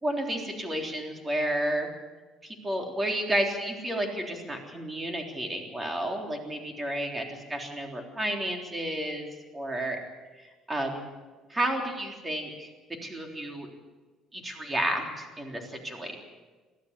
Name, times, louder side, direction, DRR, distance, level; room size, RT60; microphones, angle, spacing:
voice 1, 0.0-1.9 2.4-9.3 9.5-10.0 10.7-11.1 11.5-13.7 14.3-16.2, right 1 dB, 15° right, 2 dB, 3.6 m, -31 dB
23.0 x 14.5 x 8.3 m, 1.3 s
cardioid pair, 135°, 0 cm